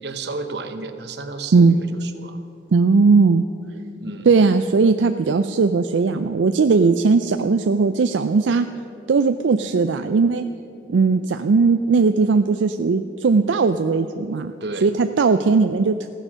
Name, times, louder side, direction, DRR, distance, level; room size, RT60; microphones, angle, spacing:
voice 1, 0.0-2.4 4.0-4.3 14.6-14.9, right 3 dB, 65° right, 8 dB, 1.0 m, -32 dB
voice 2, 2.7-3.4 4.3-8.7 9.1-10.5 10.9-14.5 14.8-16.1, right 4 dB, 85° right, 9 dB, 0.4 m, -18 dB
15.5 x 9.8 x 6.3 m, 2.7 s
head